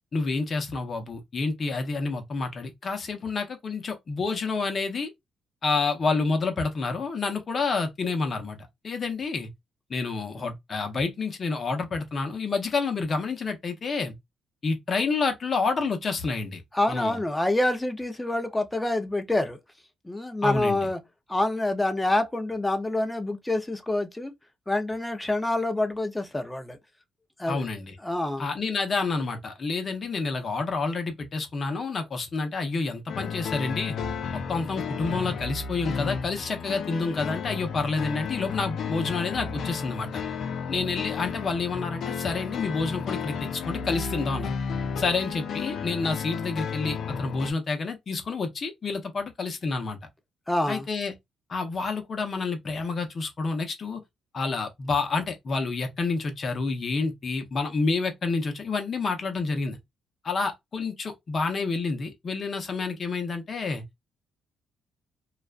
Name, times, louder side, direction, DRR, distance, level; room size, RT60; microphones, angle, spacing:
voice 1, 0.1-5.1 5.6-8.6 8.8-9.5 9.9-14.1 14.6-16.6 16.9-17.2 20.4-20.9 27.5-28.0 28.4-33.9 34.3-40.2 40.7-44.5 45.0-50.0 50.7-51.1 51.5-54.0 54.3-59.8 60.2-63.8, left 4 dB, 45° left, 0.8 m, -29 dB
voice 2, 16.7-19.6 20.0-21.0 21.3-24.3 24.7-26.8 27.4-27.6 28.0-28.5 50.5-50.9, left 2 dB, 10° left, 0.6 m, -26 dB
sound 1, 33.1-47.5, left 6 dB, 65° left, 0.5 m, -33 dB
2.4 x 2.2 x 2.4 m
cardioid pair, 90°, 0 cm